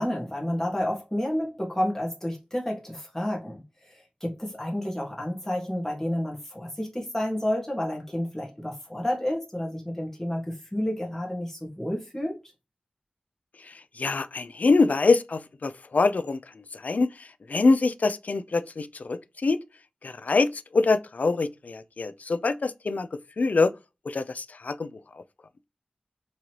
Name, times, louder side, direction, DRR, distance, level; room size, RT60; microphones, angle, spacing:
voice 1, 0.0-3.6 3.8-12.4, left 1 dB, 15° left, 1.5 m, -30 dB
voice 2, 13.7-19.6 20.0-23.7 24.1-24.9, left 3 dB, 60° left, 0.4 m, -25 dB
3.7 x 3.1 x 2.9 m
wide cardioid pair, 60°, 3 cm